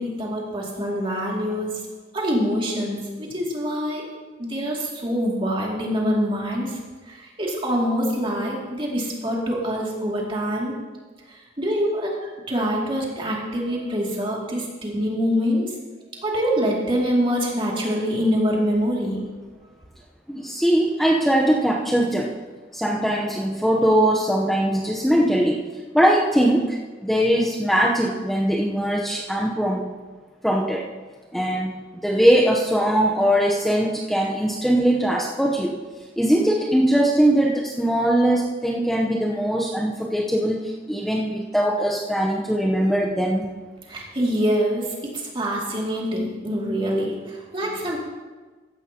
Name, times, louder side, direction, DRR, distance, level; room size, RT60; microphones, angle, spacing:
voice 1, 0.0-1.9 2.1-4.0 4.4-6.8 7.1-10.8 11.6-15.7 16.2-19.3 43.9-48.0, equal, 30° right, -3 dB, 2.4 m, -25 dB
voice 2, 20.3-22.4 22.7-25.6 25.9-26.8 27.0-29.9 30.4-30.9 31.3-35.7 36.2-43.5, right 1 dB, ahead, -2 dB, 0.8 m, -21 dB
15.0 x 11.5 x 2.9 m, 1.4 s
head